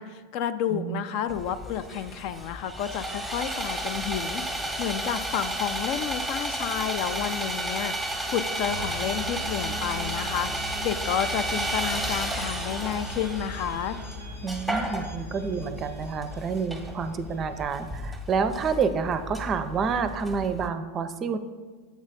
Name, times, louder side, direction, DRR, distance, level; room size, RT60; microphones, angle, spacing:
voice 1, 0.0-14.0, left 9 dB, 55° left, 11 dB, 0.4 m, -31 dB
voice 2, 0.7-1.1 14.4-21.4, right 5 dB, 30° right, 10 dB, 0.5 m, -28 dB
Sawing, 1.3-20.7, right 1 dB, ahead, 0.8 m, -33 dB
sound 1, 6.5-17.3, equal, 90° left, 0.7 m, -41 dB
7.2 x 3.1 x 5.4 m, 1.5 s
hypercardioid pair, 90°, 0 cm